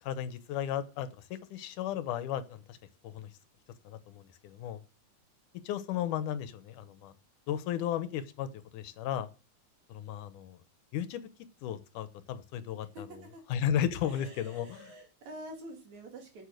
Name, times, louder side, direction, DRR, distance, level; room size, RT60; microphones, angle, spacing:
voice 1, 0.0-2.8 3.0-3.3 3.8-4.8 5.6-7.1 7.5-8.5 8.7-9.3 9.9-10.6 10.9-11.2 11.6-13.1 13.5-14.9, left 10 dB, 85° left, 12 dB, 2.4 m, -34 dB
voice 2, 12.9-13.4 14.0-16.5, right 1 dB, 70° right, 3 dB, 3.5 m, -47 dB
8.1 x 7.5 x 6.4 m, 0.35 s
omnidirectional pair, 3.5 m